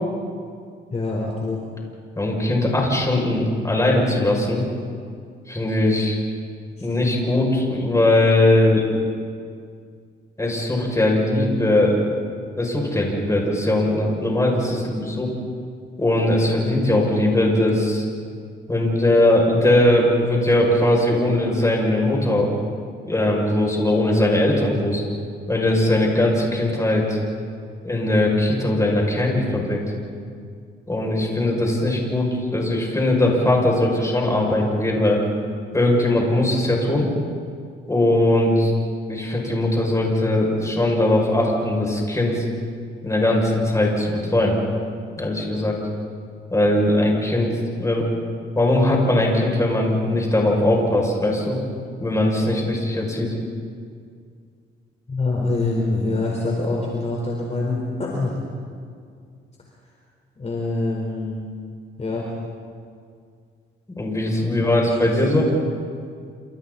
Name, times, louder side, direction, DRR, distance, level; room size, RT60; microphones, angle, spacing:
voice 1, 0.9-1.6 6.8-6.9 55.1-58.3 60.4-61.5 62.0-62.3 64.6-64.7 65.3-65.5, left 2 dB, 35° left, -2 dB, 4.6 m, -25 dB
voice 2, 2.2-4.6 5.5-6.2 6.8-8.9 10.4-12.0 12.6-15.3 16.0-18.0 18.7-22.5 23.1-25.0 25.5-27.2 27.8-29.8 30.9-35.2 35.7-37.1 37.9-38.7 39.1-42.4 43.0-44.6 45.2-45.8 46.5-47.5 47.8-48.1 48.6-51.6 52.0-53.3 64.0-65.5, left 1 dB, 15° left, -1 dB, 7.1 m, -20 dB
28.5 x 28.5 x 4.3 m, 2.2 s
cardioid pair, 90°, 20 cm